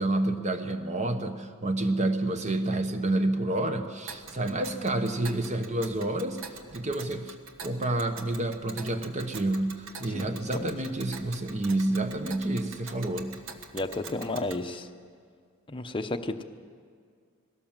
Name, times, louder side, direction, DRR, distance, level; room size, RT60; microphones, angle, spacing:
voice 1, 0.0-7.4 7.6-13.3, right 2 dB, 30° right, 8 dB, 1.2 m, -29 dB
Tick, 4.1-14.6, right 4 dB, 60° right, 1.4 m, -45 dB
voice 2, 10.1-10.7 13.7-14.9 15.7-16.4, left 2 dB, 25° left, 6 dB, 0.8 m, -33 dB
20.5 x 17.0 x 7.4 m, 2.1 s
head